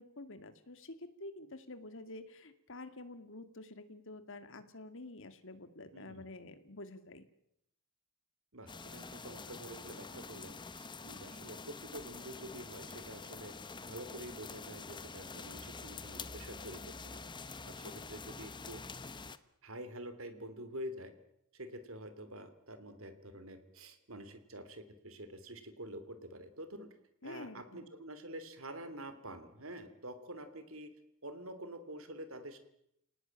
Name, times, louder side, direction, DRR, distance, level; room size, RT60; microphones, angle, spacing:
voice 1, 0.0-7.2 27.2-27.9, left 2 dB, 60° left, 10 dB, 2.2 m, -49 dB
voice 2, 5.9-6.3 8.5-13.5 13.8-17.2 17.6-18.8 19.6-21.1 21.5-26.9 27.2-30.9 31.2-32.6, right 1 dB, 65° right, 11 dB, 3.1 m, -47 dB
sound 1, 8.7-19.4, left 4 dB, 20° left, 1.0 m, -47 dB
29.5 x 18.5 x 8.8 m, 0.77 s
head